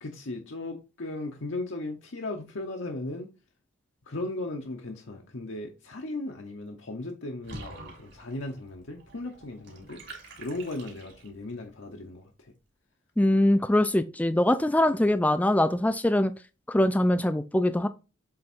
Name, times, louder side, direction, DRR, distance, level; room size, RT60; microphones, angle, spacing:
voice 1, 0.0-3.3 4.1-10.0 10.4-12.5, left 2 dB, 70° left, 0.9 m, -37 dB
Water / Bathtub (filling or washing), 7.4-11.5, right 2 dB, 60° right, 2.6 m, -47 dB
voice 2, 13.2-16.3 16.7-17.9, left 1 dB, 10° left, 0.3 m, -23 dB
7.6 x 3.5 x 4.4 m
head